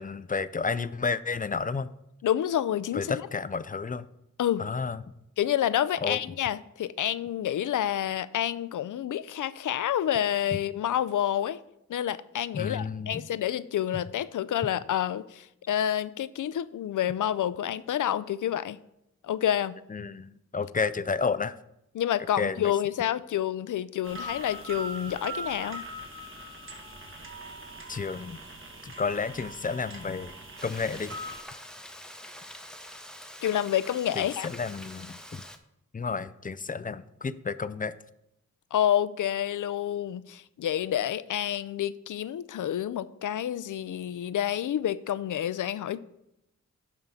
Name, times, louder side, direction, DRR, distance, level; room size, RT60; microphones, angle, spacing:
voice 1, 0.0-1.9 2.9-4.1 4.6-5.0 6.0-6.2 12.5-13.2 13.9-14.0 19.9-21.5 22.4-22.7 27.9-28.4 28.8-30.3 30.6-31.2 34.2-35.4 35.9-37.9, left 5 dB, 25° left, 15 dB, 0.4 m, -31 dB
voice 2, 2.2-3.2 4.4-4.7 5.4-11.6 11.9-18.8 19.2-19.7 21.9-25.8 33.4-34.5 38.7-46.0, left 11 dB, 75° left, 16 dB, 0.5 m, -28 dB
sound 1, 24.0-31.4, right 1 dB, 40° right, 1.8 m, -41 dB
Frying (food), 30.6-35.6, equal, ahead, 0.8 m, -45 dB
10.5 x 3.8 x 5.6 m, 0.83 s
cardioid pair, 60°, 31 cm